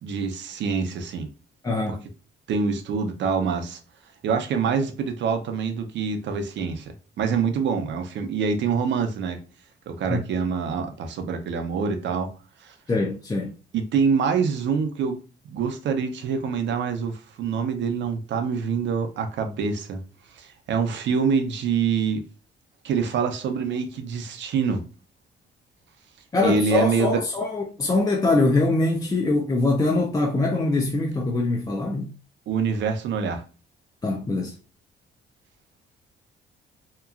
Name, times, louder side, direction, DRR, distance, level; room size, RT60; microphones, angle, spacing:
voice 1, 0.0-1.3 1.9-2.0 2.5-3.8 4.2-9.4 9.9-12.3 12.6-12.7 13.7-15.2 15.5-20.0 20.3-22.2 22.8-24.8 26.4-27.2 32.5-33.4, right 5 dB, 65° right, 0.6 m, -25 dB
voice 2, 1.6-2.0 10.1-10.2 12.9-13.5 26.3-32.1 34.0-34.5, left 2 dB, 20° left, 0.4 m, -23 dB
2.9 x 2.3 x 2.3 m
cardioid pair, 90°, 20 cm